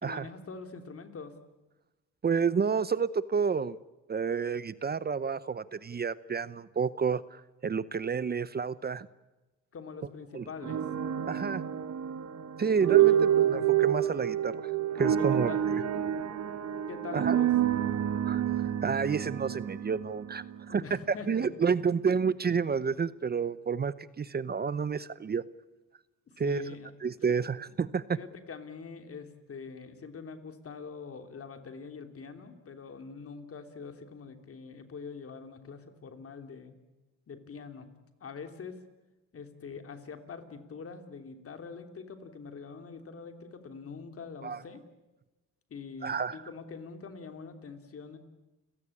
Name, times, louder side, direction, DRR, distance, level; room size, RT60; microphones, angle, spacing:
voice 1, 0.0-1.3 9.7-10.8 13.0-13.2 15.2-15.6 16.9-17.5 20.7-21.5 26.3-26.9 27.3-27.4 28.1-36.8 37.3-37.9 38.2-38.8 39.3-44.8 45.7-48.2, left 5 dB, 50° left, 7 dB, 3.2 m, -44 dB
voice 2, 2.2-3.8 4.1-9.1 10.3-10.4 11.3-11.6 12.6-14.7 15.0-15.5 17.1-17.4 18.2-21.0 21.3-25.4 26.4-26.7 27.0-28.0 44.4-44.6 46.0-46.4, right 6 dB, 30° right, 17 dB, 0.8 m, -30 dB
sound 1, 10.6-20.7, right 11 dB, 60° right, 1.4 m, -28 dB
30.0 x 17.0 x 8.6 m, 1.1 s
cardioid pair, 90°, 30 cm